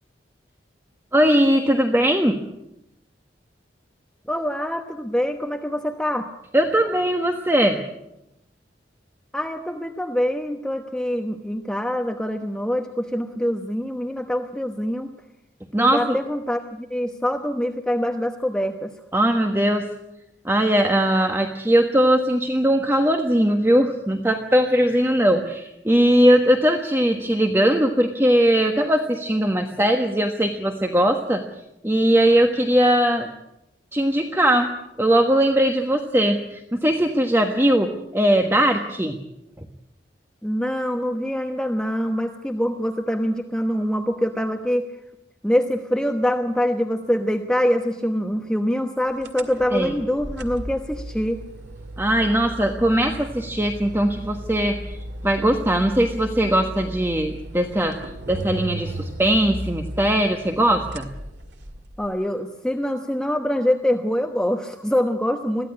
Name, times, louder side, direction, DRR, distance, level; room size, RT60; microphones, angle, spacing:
voice 1, 1.1-2.4 6.5-7.8 15.7-16.2 19.1-19.9 20.4-31.4 31.8-33.3 33.9-34.7 35.0-39.2 49.7-49.9 52.0-55.0 55.2-58.0 58.3-61.1, right 1 dB, 15° right, 4 dB, 1.3 m, -20 dB
voice 2, 4.3-6.3 9.3-15.1 15.8-18.9 40.4-44.8 45.4-51.4 62.0-65.7, equal, 5° left, 4 dB, 1.0 m, -24 dB
sound 1, 49.2-62.1, right 1 dB, 75° right, 2.1 m, -36 dB
22.0 x 15.5 x 9.6 m, 0.87 s
head